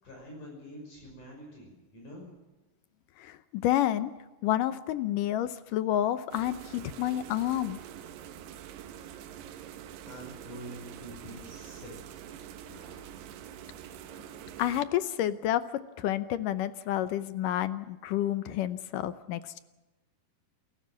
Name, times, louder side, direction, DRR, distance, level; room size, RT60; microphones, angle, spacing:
voice 1, 0.0-2.3 10.0-12.3 12.7-13.0, equal, 50° left, -1 dB, 7.3 m, -46 dB
voice 2, 3.2-4.1 4.4-7.8 14.6-15.6 16.0-19.6, left 12 dB, 75° left, 13 dB, 2.0 m, -29 dB
sound 1, 6.3-14.8, right 10 dB, 85° right, 3.3 m, -45 dB
28.5 x 14.5 x 7.5 m, 1.1 s
omnidirectional pair, 4.6 m